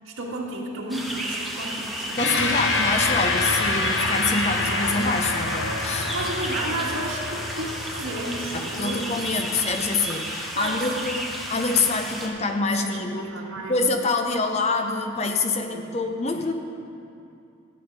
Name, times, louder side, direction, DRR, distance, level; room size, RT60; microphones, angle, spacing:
voice 1, 0.0-2.7 3.0-3.1 6.0-9.0 9.3-9.4 10.5-11.1 12.8-13.7 15.7-16.0, right 2 dB, 90° right, -2 dB, 1.6 m, -33 dB
sound 1, 0.9-12.3, right 1 dB, ahead, 0.9 m, -33 dB
sound 2, 2.2-10.9, left 3 dB, 65° left, 0.8 m, -27 dB
voice 2, 2.2-6.1 8.5-13.3 13.7-16.5, left 3 dB, 30° left, 5 dB, 0.6 m, -26 dB
13.5 x 7.8 x 5.2 m, 2.5 s
head